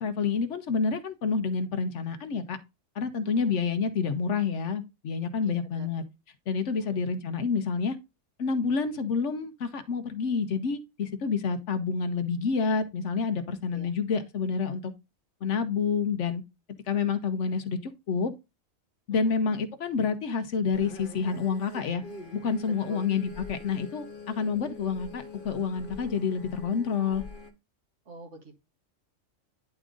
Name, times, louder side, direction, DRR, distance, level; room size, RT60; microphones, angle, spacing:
voice 1, 0.0-2.6 3.0-6.0 6.5-8.0 8.4-14.9 15.4-16.4 16.9-18.3 19.1-22.0 22.3-27.2, left 5 dB, 65° left, 1.1 m, -28 dB
voice 2, 5.4-5.9 6.8-7.0 13.7-13.9 19.2-19.3 22.8-23.1 28.1-28.6, right 2 dB, 60° right, 1.8 m, -47 dB
sound 1, 20.7-27.5, left 3 dB, 40° left, 1.2 m, -44 dB
10.0 x 3.6 x 3.7 m
omnidirectional pair, 1.4 m